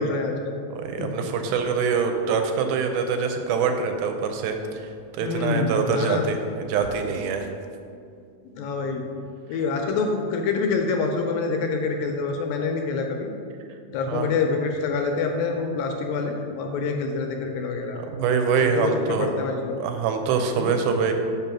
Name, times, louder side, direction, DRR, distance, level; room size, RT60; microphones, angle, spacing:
voice 1, 0.0-0.6 1.0-1.1 5.2-6.2 8.5-9.1 9.5-13.3 13.9-18.0 18.8-19.9 20.6-20.8, left 4 dB, 80° left, 3 dB, 2.1 m, -26 dB
voice 2, 0.7-4.9 5.2-7.5 14.1-14.3 18.0-19.3 19.8-21.1, right 5 dB, 85° right, 5 dB, 2.5 m, -24 dB
5.6 x 5.4 x 5.8 m, 2.4 s
omnidirectional pair, 4.3 m